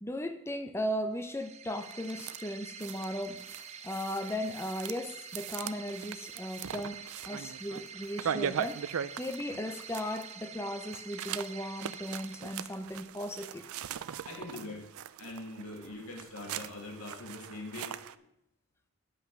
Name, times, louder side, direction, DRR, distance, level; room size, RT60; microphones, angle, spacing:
voice 1, 0.0-13.7, equal, 10° left, 8 dB, 0.6 m, -37 dB
sound 1, 1.1-13.1, right 7 dB, 30° right, 0.6 m, -47 dB
sound 2, 1.8-2.4 2.8-10.5 10.9-18.2, right 8 dB, 75° right, 0.4 m, -40 dB
sound 3, 7.9-8.0 8.3-8.5 8.8-9.0 9.3-9.5 9.8-9.9 10.3-10.4 11.1-13.0 14.0-14.5 15.5-16.2, right 3 dB, 70° left, 4.5 m, -62 dB
voice 2, 14.3-14.9 15.2-18.3, left 2 dB, 90° left, 1 dB, 2.2 m, -43 dB
9.7 x 5.7 x 6.1 m, 0.83 s
head